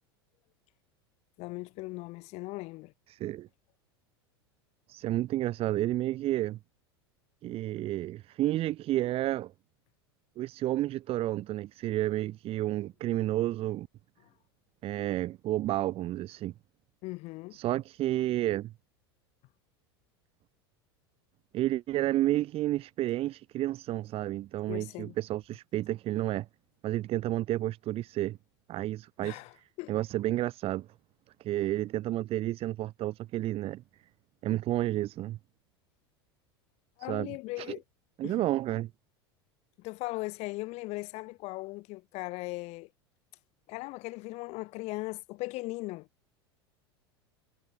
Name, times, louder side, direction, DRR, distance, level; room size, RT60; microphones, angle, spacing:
voice 1, 1.4-2.9 17.0-17.6 24.7-25.1 29.2-29.9 37.0-37.8 38.2-38.4 39.8-42.9 43.7-46.1, left 22 dB, 55° left, 4.9 m, -38 dB
voice 2, 3.1-3.5 4.9-6.6 7.4-9.5 10.4-13.9 14.8-16.5 17.5-18.7 21.5-26.5 26.8-28.4 28.7-29.4 29.9-30.9 31.4-33.8 34.4-35.4 37.1-37.8 38.2-38.9, right 14 dB, 45° right, 5.3 m, -31 dB
hypercardioid pair, 90°, 13 cm